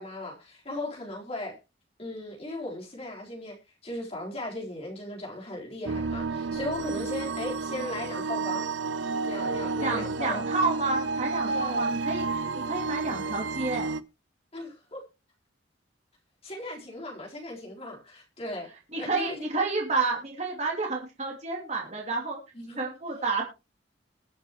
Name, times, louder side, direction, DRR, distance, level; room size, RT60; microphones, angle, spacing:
voice 1, 0.0-1.6 2.0-3.6 3.8-8.7 9.2-10.4 11.5-11.9 14.5-15.0 16.4-18.7 18.9-19.5 22.6-22.8, left 1 dB, 35° left, 4.0 m, -37 dB
sound 1, 5.9-14.0, right 4 dB, 80° right, 0.7 m, -31 dB
voice 2, 9.8-13.9 18.9-22.4 22.8-23.4, right 3 dB, 40° right, 2.7 m, -30 dB
21.5 x 7.5 x 3.1 m
head